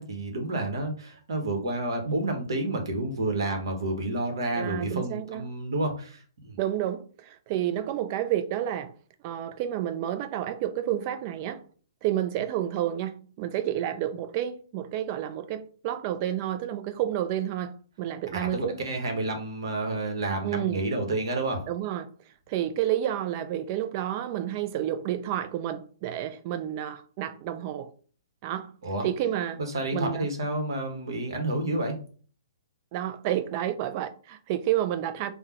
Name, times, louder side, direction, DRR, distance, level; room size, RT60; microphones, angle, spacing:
voice 1, 0.0-6.6 18.3-21.6 28.8-29.0 29.6-32.0, right 2 dB, 60° right, 1.0 m, -30 dB
voice 2, 4.5-5.4 6.6-8.9 9.2-11.6 12.0-18.8 20.4-20.8 21.7-22.1 22.5-27.9 28.4-28.7 29.0-29.6 29.9-30.3 32.9-35.3, right 11 dB, 35° right, 0.3 m, -30 dB
3.4 x 2.1 x 2.9 m
figure-of-eight pair, 125°, 3 cm